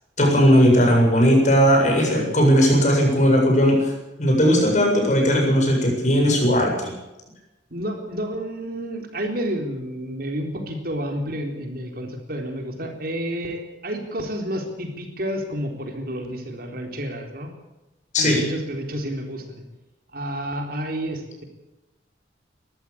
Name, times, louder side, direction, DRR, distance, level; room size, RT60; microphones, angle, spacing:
voice 1, 0.2-3.9 4.2-6.9 18.1-18.4, equal, 40° left, 1 dB, 7.5 m, -17 dB
voice 2, 7.7-17.5 18.2-19.6 20.1-21.4, equal, 55° right, 3 dB, 3.9 m, -30 dB
22.5 x 14.5 x 8.7 m, 1.0 s
head